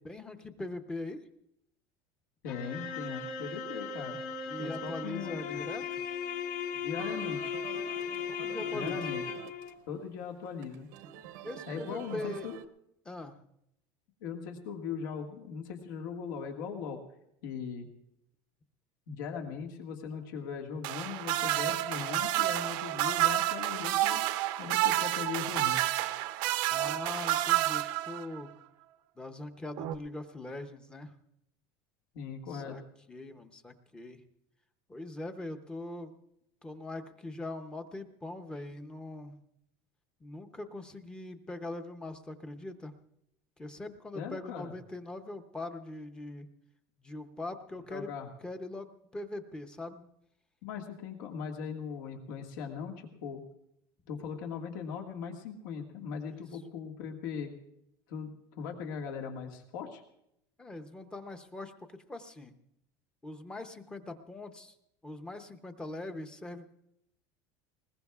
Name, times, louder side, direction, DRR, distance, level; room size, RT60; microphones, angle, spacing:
voice 1, 0.0-1.3 4.5-6.0 8.3-9.0 11.4-12.5 13.0-13.4 26.7-28.5 29.2-31.1 32.5-32.8 33.1-34.2 34.9-36.2 36.6-39.4 40.2-42.9 43.6-46.5 47.0-48.1 48.4-50.1 56.3-56.6 60.6-62.5 63.2-64.7 65.0-66.7, left 2 dB, 10° left, 7 dB, 0.6 m, -42 dB
voice 2, 2.4-4.2 4.6-5.6 6.7-7.6 8.7-9.2 9.9-10.9 11.7-12.6 14.2-17.0 17.4-17.9 19.1-24.2 24.6-25.9 32.1-32.8 44.1-44.7 47.9-48.3 50.6-53.4 54.1-57.5 58.1-60.0, left 6 dB, 85° left, 2 dB, 1.8 m, -39 dB
sound 1, 2.5-9.7, left 6 dB, 65° left, 1.6 m, -37 dB
sound 2, 7.0-12.7, right 10 dB, 80° right, 0.8 m, -47 dB
sound 3, 20.8-28.4 29.8-30.0, right 15 dB, 50° right, 0.6 m, -29 dB
20.5 x 20.0 x 2.4 m, 0.78 s
cardioid pair, 175°, 10 cm